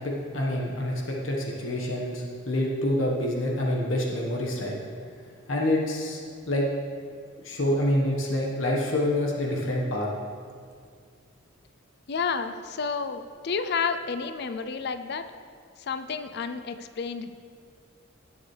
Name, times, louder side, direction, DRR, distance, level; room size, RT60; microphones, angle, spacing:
voice 1, 0.0-4.8 5.5-6.2 6.5-6.7 7.3-10.1, left 1 dB, 75° left, -2 dB, 1.4 m, -27 dB
voice 2, 12.1-15.3 15.8-17.3, left 5 dB, 55° left, 9 dB, 0.4 m, -30 dB
18.0 x 7.2 x 3.3 m, 2.1 s
head